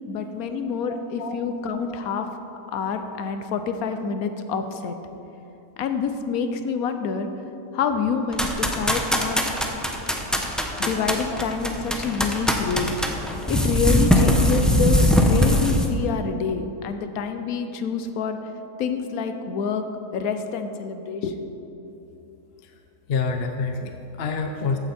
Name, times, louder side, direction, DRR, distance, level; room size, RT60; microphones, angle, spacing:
voice 1, 0.0-2.3 2.7-5.0 5.8-7.3 7.7-9.5 10.8-12.9 13.5-18.4 18.8-19.8 20.1-21.5, left 5 dB, 80° left, 8 dB, 1.2 m, -27 dB
voice 2, 0.9-1.3 1.9-2.0 11.3-11.4 13.4-13.5 14.2-14.3 23.1-24.8, left 4 dB, 50° left, 5 dB, 0.9 m, -28 dB
sound 1, 8.3-15.9, equal, ahead, 0.7 m, -21 dB
14.5 x 9.1 x 4.4 m, 3.0 s
omnidirectional pair, 1.5 m